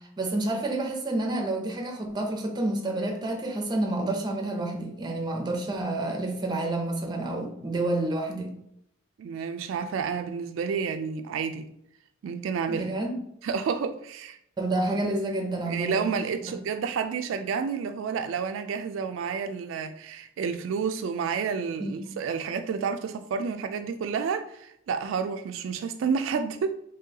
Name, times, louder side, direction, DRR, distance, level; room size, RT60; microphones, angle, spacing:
voice 1, 0.2-8.5 12.7-13.2 14.6-16.1 16.4-16.6 21.8-22.2, right 2 dB, 20° right, 0.6 m, -29 dB
voice 2, 9.2-11.7 12.2-12.9 13.4-14.4 15.7-26.7, right 6 dB, 80° right, 0.3 m, -30 dB
3.7 x 3.2 x 2.8 m
head